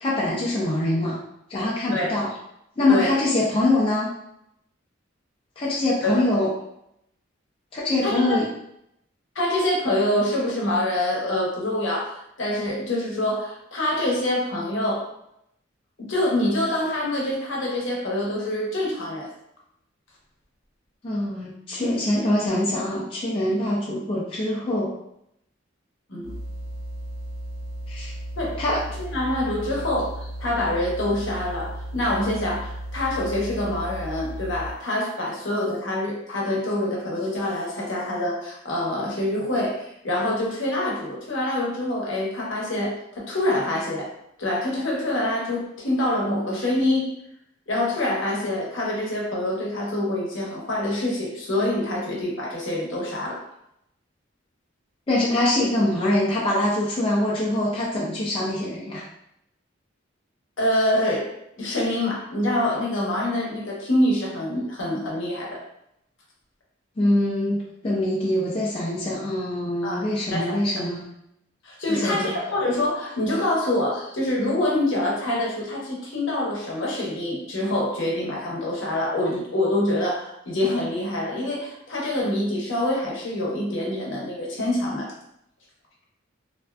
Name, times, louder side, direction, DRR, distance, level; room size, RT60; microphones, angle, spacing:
voice 1, 0.0-1.2 1.5-2.3 2.8-4.1 5.6-6.5 7.7-8.5 21.0-24.9 27.9-28.1 28.6-28.8 55.1-59.1 67.0-71.1 71.9-72.3, left 1 dB, 25° left, -6 dB, 0.4 m, -24 dB
voice 2, 8.0-8.4 9.3-15.0 16.0-19.3 26.1-26.3 28.4-28.6 29.0-44.1 44.4-47.1 47.7-53.4 60.6-61.3 61.6-65.6 69.8-70.9 71.6-85.1, left 1 dB, 70° left, -3 dB, 0.8 m, -25 dB
sound 1, 26.2-34.9, right 1 dB, 70° right, 0.4 m, -35 dB
2.5 x 2.3 x 2.2 m, 0.77 s
head